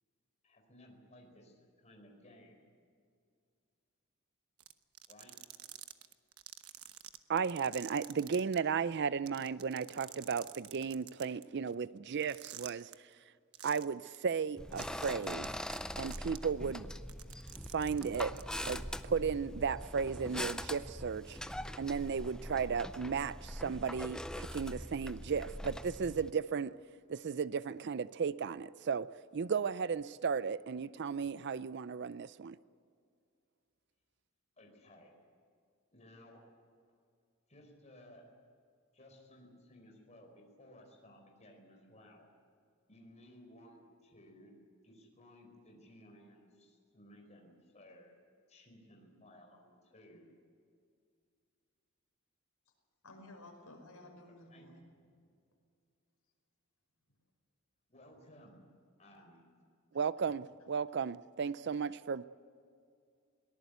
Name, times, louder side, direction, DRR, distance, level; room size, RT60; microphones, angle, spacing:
voice 1, 0.4-2.7 5.1-5.3 34.6-35.2 35.9-36.4 37.5-38.2 38.9-42.3 42.9-44.5 44.8-48.1 48.5-50.3 54.5-54.7 57.9-58.7 59.0-59.5, left 1 dB, 30° left, 4.7 m, -58 dB
sound 1, 4.6-8.6 8.9-9.0 9.3-11.4 12.2-12.9 13.5-13.8 14.1-14.2 14.7-16.4 17.0-18.4, right 13 dB, 75° right, 1.0 m, -48 dB
voice 2, 7.3-12.9 13.6-15.5 16.0-16.9 17.7-18.3 18.7-21.4 21.8-26.8 27.1-32.6 59.9-62.2, right 6 dB, 50° right, 0.4 m, -35 dB
sound 2, 14.6-26.3, left 1 dB, 5° left, 0.5 m, -42 dB
voice 3, 53.0-54.8 55.2-55.3, left 1 dB, 80° left, 5.3 m, -54 dB
23.0 x 18.5 x 8.2 m
head